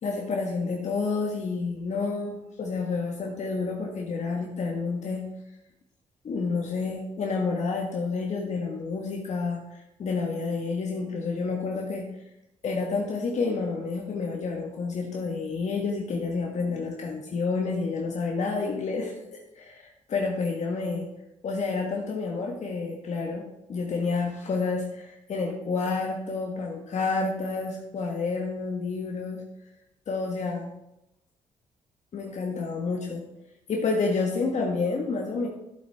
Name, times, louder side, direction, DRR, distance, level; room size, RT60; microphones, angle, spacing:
voice 1, 0.0-5.3 6.2-12.1 12.6-21.1 21.4-29.4 30.1-30.7 32.1-33.2 33.7-35.5, left 4 dB, 60° left, 0 dB, 1.6 m, -29 dB
11.5 x 7.7 x 3.6 m, 0.87 s
cardioid pair, 70°, 14 cm